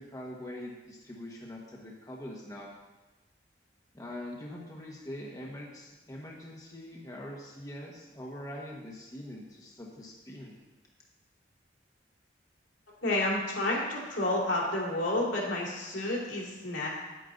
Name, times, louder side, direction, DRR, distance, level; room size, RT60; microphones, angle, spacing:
voice 1, 0.0-2.7 3.9-10.6, left 1 dB, 20° left, -2 dB, 1.1 m, -43 dB
voice 2, 13.0-16.9, left 1 dB, 80° left, -3 dB, 2.7 m, -30 dB
9.4 x 8.8 x 3.9 m, 1.1 s
head